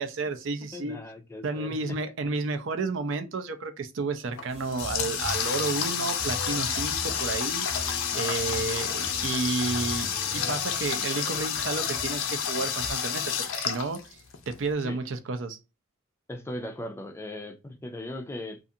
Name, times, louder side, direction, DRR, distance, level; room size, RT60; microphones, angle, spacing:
voice 1, 0.0-1.0 1.4-10.1 10.3-14.2 14.5-15.6, right 3 dB, 70° right, 0.5 m, -31 dB
voice 2, 0.7-2.0 14.8-15.0 16.3-18.6, left 1 dB, 15° left, 0.4 m, -38 dB
Water tap faucet, 4.3-14.5, left 8 dB, 85° left, 0.5 m, -30 dB
sound 1, 4.5-12.9, right 1 dB, 30° right, 0.9 m, -42 dB
2.5 x 2.4 x 2.6 m
head